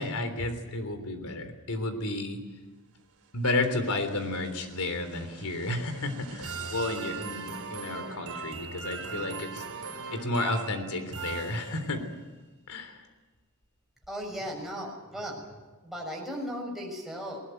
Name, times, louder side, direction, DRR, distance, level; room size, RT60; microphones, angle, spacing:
voice 1, 0.0-2.4 3.3-9.8 10.1-12.0 12.7-13.0, left 2 dB, 85° left, 8 dB, 3.4 m, -32 dB
sound 1, 3.2-12.2, right 5 dB, 85° right, 3.6 m, -40 dB
voice 2, 14.1-15.4 15.8-17.4, equal, ahead, -2 dB, 6.7 m, -36 dB
20.5 x 19.5 x 9.3 m, 1.2 s
head